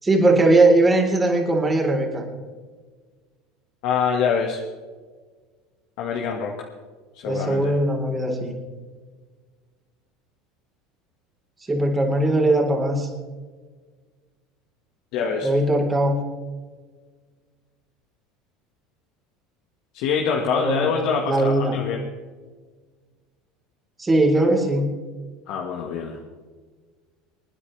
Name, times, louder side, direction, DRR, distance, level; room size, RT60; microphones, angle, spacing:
voice 1, 0.0-2.2 7.2-8.5 11.7-13.1 15.4-16.2 20.4-20.9 21.2-21.8 24.0-24.9, right 2 dB, 20° right, 1 dB, 4.0 m, -20 dB
voice 2, 3.8-4.6 6.0-6.5 7.1-7.7 15.1-15.5 19.9-22.0 25.5-26.2, left 6 dB, 65° left, 0 dB, 1.7 m, -25 dB
27.5 x 9.9 x 3.4 m, 1.5 s
hypercardioid pair, 85°, 0 cm